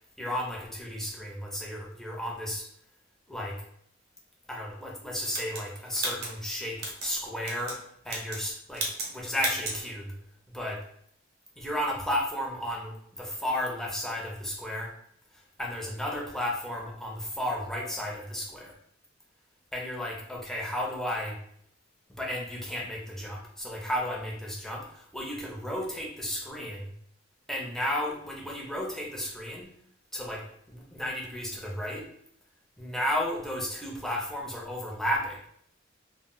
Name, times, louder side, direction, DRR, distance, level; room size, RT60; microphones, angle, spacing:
voice 1, 0.2-2.7 3.3-3.6 4.5-7.8 8.0-8.8 9.1-10.1 10.5-10.8 11.6-14.9 15.3-18.8 19.7-21.4 22.2-26.9 27.5-29.7 30.1-32.1 32.8-35.4, equal, ahead, -2 dB, 0.5 m, -33 dB
sound 1, 5.3-7.1 7.4-7.8 8.0-8.5 8.7-9.1 9.4-9.8, right 2 dB, 55° right, 0.7 m, -34 dB
2.1 x 2.0 x 3.7 m, 0.67 s
head